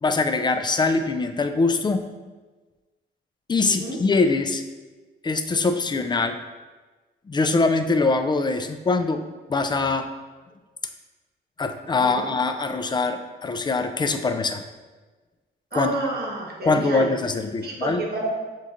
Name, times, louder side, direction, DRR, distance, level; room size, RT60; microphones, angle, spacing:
voice 1, 0.0-2.0 3.5-4.6 5.2-6.4 7.3-9.2 9.5-10.1 11.6-14.6 15.7-15.9 16.6-18.0, left 3 dB, 20° left, 8 dB, 0.4 m, -23 dB
voice 2, 3.6-4.0 12.0-12.3 15.7-17.1 17.6-18.4, right 2 dB, 50° right, -2 dB, 1.2 m, -29 dB
6.8 x 3.1 x 2.5 m, 1.3 s
cardioid pair, 90°, 20 cm